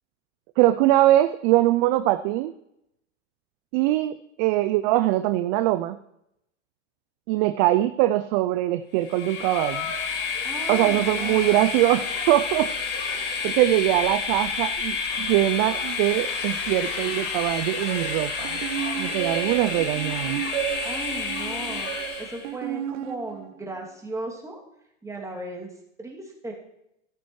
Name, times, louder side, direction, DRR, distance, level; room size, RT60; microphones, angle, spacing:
voice 1, 0.6-2.5 3.7-6.0 7.3-9.9 10.7-12.7 13.1-18.6 19.0-20.4, right 15 dB, 40° right, 12 dB, 0.4 m, -22 dB
Train, 9.0-22.5, left 5 dB, 35° left, 4.1 m, -30 dB
voice 2, 10.4-11.5 20.8-24.6 25.0-25.7 26.0-26.5, right 2 dB, 10° right, -1 dB, 2.6 m, -36 dB
sound 1, 17.9-23.7, right 12 dB, 55° right, 0.8 m, -33 dB
14.0 x 12.0 x 3.2 m, 0.82 s
hypercardioid pair, 110°, 37 cm